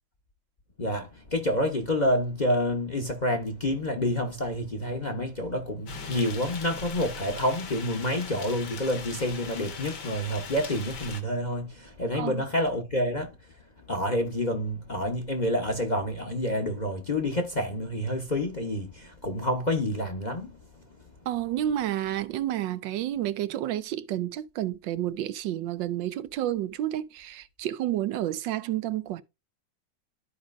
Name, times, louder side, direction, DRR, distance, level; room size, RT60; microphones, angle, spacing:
voice 1, 0.8-13.3 13.9-20.5, left 1 dB, 30° left, 0.9 m, -28 dB
sound 1, 5.9-11.2, left 5 dB, 65° left, 2.0 m, -40 dB
voice 2, 21.3-29.2, right 12 dB, 80° right, 1.3 m, -30 dB
13.0 x 5.0 x 2.6 m
omnidirectional pair, 2.0 m